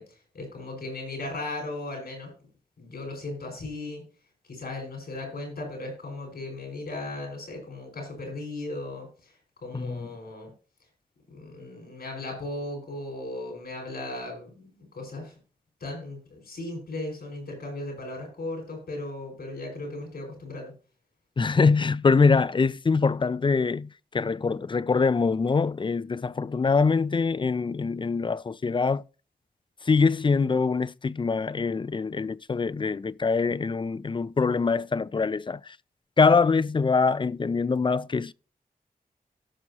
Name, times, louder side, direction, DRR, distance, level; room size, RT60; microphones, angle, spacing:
voice 1, 0.0-2.3 2.8-4.0 4.5-9.3 9.6-10.5 11.3-15.3 15.8-20.7, left 2 dB, 85° left, 5.3 m, -37 dB
voice 2, 9.7-10.1 21.4-29.0 29.8-35.8 36.2-38.3, left 4 dB, 30° left, 0.4 m, -24 dB
17.5 x 6.0 x 2.8 m
cardioid pair, 70°, 16 cm